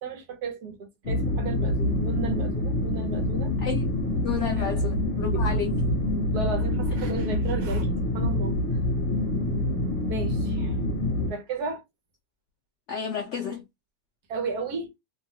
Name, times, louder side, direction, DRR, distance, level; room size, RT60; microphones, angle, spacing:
voice 1, 0.0-3.5 4.6-4.7 5.3-5.4 6.3-7.9 8.1-8.5 10.1-10.8 11.3-11.8 14.3-14.9, right 4 dB, 70° right, 1.3 m, -34 dB
sound 1, 1.0-11.3, left 1 dB, 50° left, 1.0 m, -26 dB
voice 2, 3.6-5.7 12.9-13.6, left 6 dB, 85° left, 0.6 m, -32 dB
3.1 x 2.2 x 2.7 m
omnidirectional pair, 1.9 m